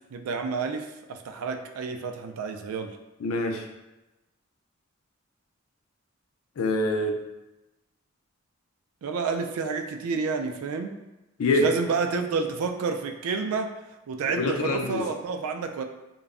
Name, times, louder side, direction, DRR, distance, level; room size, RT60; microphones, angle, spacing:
voice 1, 0.1-3.0 9.0-10.9 11.5-13.7 14.1-15.8, right 4 dB, 85° right, 5 dB, 0.3 m, -29 dB
voice 2, 3.2-3.7 6.6-7.2 11.4-11.7 14.3-15.0, left 2 dB, 75° left, 3 dB, 0.4 m, -25 dB
2.2 x 2.0 x 3.5 m, 1.0 s
head